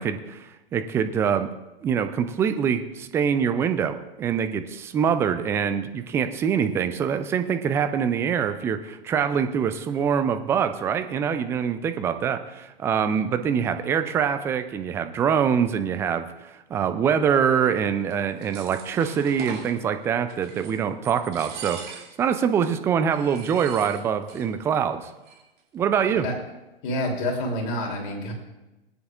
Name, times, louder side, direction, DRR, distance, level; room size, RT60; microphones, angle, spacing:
voice 1, 0.0-1.5 1.8-25.1 25.7-26.2, right 7 dB, 10° right, 9 dB, 0.3 m, -24 dB
sound 1, 18.1-19.7 20.3-20.8 21.0-22.3 22.6-22.7 23.1-24.5 24.7-24.8 25.1-25.6, right 6 dB, 30° right, 2.5 m, -41 dB
voice 2, 26.8-28.3, left 1 dB, 55° left, 1 dB, 3.1 m, -28 dB
19.0 x 9.5 x 2.4 m, 1.0 s
figure-of-eight pair, 105°, 31 cm